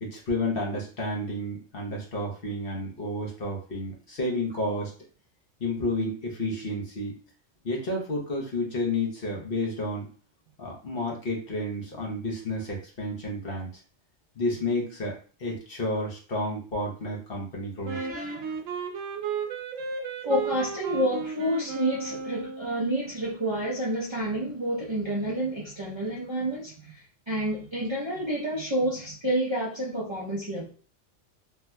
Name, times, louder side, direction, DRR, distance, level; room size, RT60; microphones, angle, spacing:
voice 1, 0.0-4.9 5.6-7.1 7.6-10.1 10.6-13.8 14.4-18.0, left 1 dB, 50° left, -2 dB, 1.1 m, -31 dB
Wind instrument woodwind instrument, 17.8-22.9, right 6 dB, 85° right, 0.9 m, -34 dB
voice 2, 17.9-18.6 20.2-30.7, right 1 dB, 35° right, -7 dB, 0.5 m, -29 dB
3.3 x 2.7 x 2.2 m, 0.41 s
omnidirectional pair, 1.3 m